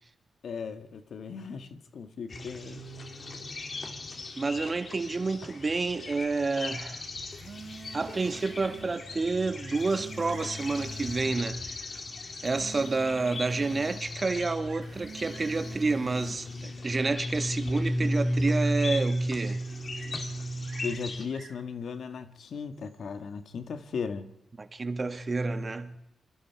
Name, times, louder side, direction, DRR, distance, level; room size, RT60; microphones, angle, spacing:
voice 1, 0.4-2.9 20.8-24.3, left 6 dB, 70° left, 1.8 m, -37 dB
sound 1, 2.3-21.2, equal, 50° left, 3.5 m, -35 dB
voice 2, 4.4-7.0 7.9-11.6 12.4-19.6 24.6-26.0, right 3 dB, 40° right, 1.9 m, -29 dB
sound 2, 7.1-8.9 9.6-11.4 12.3-14.1 14.7-16.4, right 6 dB, 60° right, 2.1 m, -47 dB
Bird vocalization bird call bird song, 9.5-9.9 10.2-10.6 11.5-11.6 12.2-12.3 12.8-12.9 13.1-13.2 14.3-15.0 15.3-15.7 16.6-17.0 20.6-21.7 22.7-23.2, right 5 dB, 80° right, 4.8 m, -53 dB
28.0 x 23.5 x 4.8 m
supercardioid pair, 55°, 0 cm